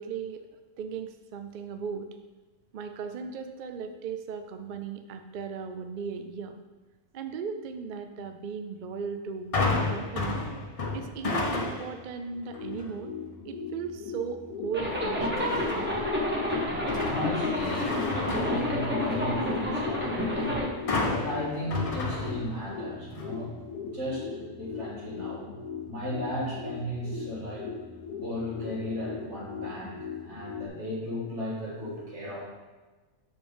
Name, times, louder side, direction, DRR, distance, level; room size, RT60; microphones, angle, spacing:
voice 1, 0.0-2.1 2.7-6.6 7.1-10.4 10.9-13.1 13.4-15.6, right 6 dB, 75° right, 7 dB, 0.4 m, -37 dB
sound 1, 9.5-12.1 12.5-12.9 15.4-16.0 16.5-19.4 20.9-22.8 23.2-23.3, left 3 dB, 40° left, 0.6 m, -31 dB
sound 2, 12.3-30.7, left 6 dB, 85° left, 1.0 m, -39 dB
Zipper (clothing), 14.7-20.7, left 1 dB, 10° right, 1.1 m, -29 dB
voice 2, 17.0-17.9 18.2-20.5 21.1-23.5 23.9-24.3 24.5-25.5 25.8-27.7 28.2-32.4, equal, 60° right, -5 dB, 2.2 m, -35 dB
6.5 x 5.2 x 3.4 m, 1.3 s
omnidirectional pair, 1.4 m